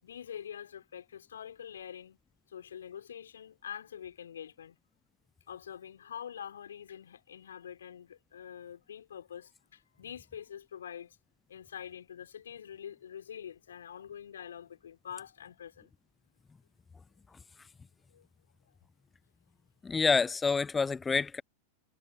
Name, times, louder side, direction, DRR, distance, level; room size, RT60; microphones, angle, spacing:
voice 1, 0.0-2.2 2.5-4.8 5.5-11.2 11.5-15.9 18.1-18.2, left 9 dB, 65° left, 4.9 m, -45 dB
voice 2, 19.8-21.4, left 4 dB, 15° left, 0.6 m, -27 dB
figure-of-eight pair, 90°, 0 cm